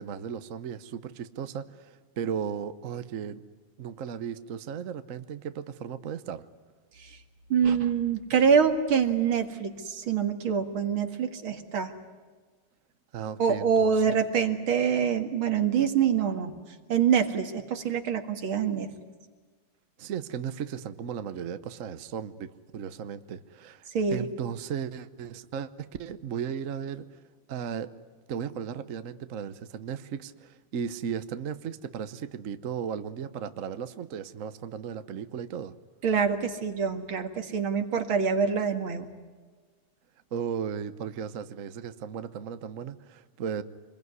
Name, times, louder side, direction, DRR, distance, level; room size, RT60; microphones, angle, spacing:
voice 1, 0.0-3.4 3.8-6.5 13.1-14.2 20.0-27.1 27.5-27.9 28.3-35.7 40.3-43.6, right 7 dB, 50° right, 11 dB, 1.0 m, -36 dB
voice 2, 7.5-11.9 13.4-16.5 16.9-18.9 23.9-24.3 36.0-39.1, right 7 dB, 75° right, 6 dB, 2.7 m, -25 dB
27.0 x 21.5 x 9.6 m, 1.4 s
omnidirectional pair, 2.3 m